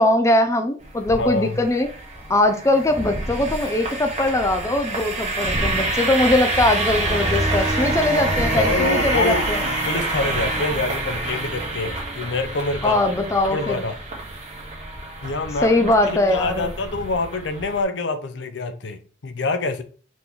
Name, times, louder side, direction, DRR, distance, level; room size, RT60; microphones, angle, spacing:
voice 1, 0.0-1.9 2.3-9.6 12.8-13.8 15.6-16.8, left 1 dB, 15° left, 0.4 m, -21 dB
sound 1, 0.8-17.8, right 2 dB, 35° right, 1.1 m, -27 dB
voice 2, 1.2-1.7 8.5-13.1 13.5-14.0 15.2-19.8, left 3 dB, 70° left, 0.6 m, -26 dB
4.2 x 2.9 x 3.6 m
head